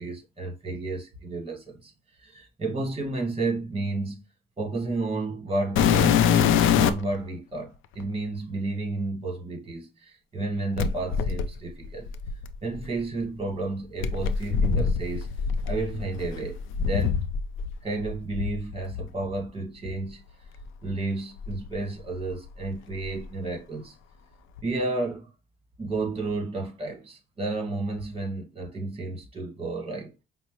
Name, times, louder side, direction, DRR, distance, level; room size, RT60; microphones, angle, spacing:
voice 1, 0.0-1.9 2.2-4.2 4.6-12.1 12.6-15.3 15.6-17.2 17.8-20.2 20.8-23.9 24.6-25.3 25.8-30.1, right 2 dB, 30° right, 1.5 m, -32 dB
sound 1, 5.8-7.2 8.0-8.1 10.8-12.9 14.0-17.7 18.0-19.1 19.8-20.0 20.6-20.7 21.4-22.5 22.7-23.3 24.6-24.7, left 7 dB, 85° left, 0.5 m, -25 dB
5.4 x 2.1 x 2.9 m
cardioid pair, 90°, 20 cm